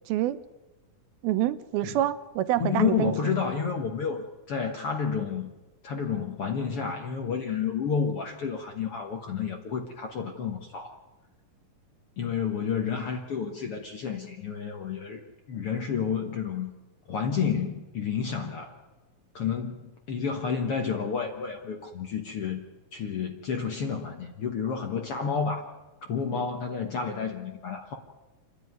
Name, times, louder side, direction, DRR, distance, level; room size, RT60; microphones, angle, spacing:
voice 1, 0.1-0.4 1.2-3.1, right 13 dB, 90° right, 12 dB, 2.7 m, -26 dB
voice 2, 2.6-5.5 5.8-10.9 12.2-15.2 15.5-16.7 17.1-18.7 19.3-22.6 22.9-25.6 26.1-27.9, left 6 dB, 60° left, 3 dB, 1.6 m, -30 dB
28.0 x 11.0 x 9.5 m, 1.1 s
omnidirectional pair, 4.2 m